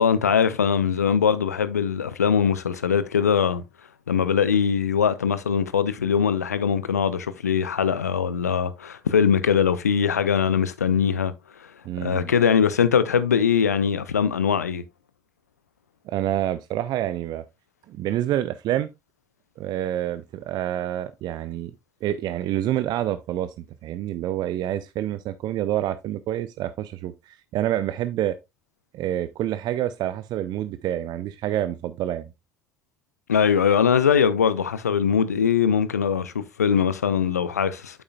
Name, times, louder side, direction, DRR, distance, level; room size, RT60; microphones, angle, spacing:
voice 1, 0.0-3.6 4.1-11.3 12.0-14.8 33.3-38.0, left 7 dB, 85° left, 0.5 m, -21 dB
voice 2, 11.9-12.3 16.1-17.4 17.9-18.9 19.6-21.7 22.0-28.4 28.9-32.3, right 12 dB, 55° right, 0.5 m, -27 dB
8.7 x 7.1 x 2.3 m
figure-of-eight pair, 45°, 8 cm